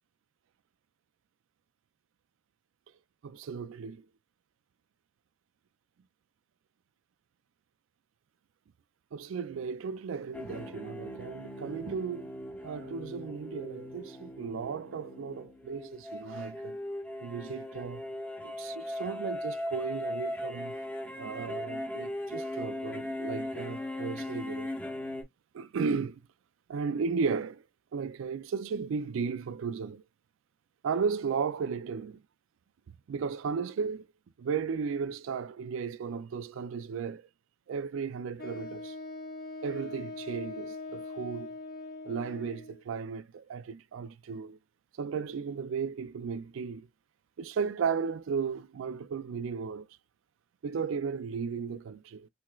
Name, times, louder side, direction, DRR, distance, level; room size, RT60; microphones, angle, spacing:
voice 1, 3.2-4.1 9.1-12.3 12.6-16.8 17.2-18.1 18.4-20.8 21.2-24.7 25.5-26.2 26.7-27.6 27.9-30.0 30.8-32.2 32.9-34.1 34.4-37.2 37.7-38.9 39.6-41.5 42.0-44.6 45.0-46.9 47.4-49.9 50.6-52.3, right 5 dB, 75° right, 0.4 m, -35 dB
sound 1, 10.3-25.2, left 1 dB, 5° left, 0.6 m, -38 dB
Wind instrument woodwind instrument, 38.4-42.8, left 2 dB, 50° left, 0.8 m, -42 dB
3.3 x 3.0 x 2.3 m
head